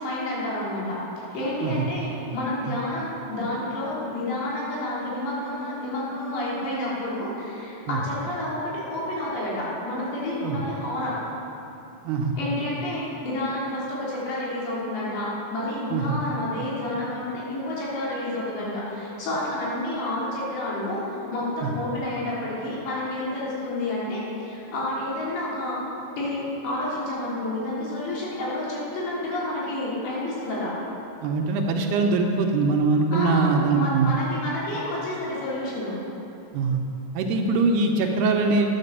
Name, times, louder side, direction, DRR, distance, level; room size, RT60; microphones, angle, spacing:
voice 1, 0.0-11.2 12.4-25.8 26.2-30.8 33.1-33.5 33.7-36.0, left 1 dB, 80° left, -7 dB, 5.5 m, -29 dB
voice 2, 12.0-12.4 15.9-16.2 21.6-21.7 31.2-34.1 36.5-36.8 37.1-38.7, right 3 dB, 75° right, 2 dB, 2.7 m, -22 dB
11.0 x 10.5 x 6.7 m, 2.9 s
omnidirectional pair, 5.0 m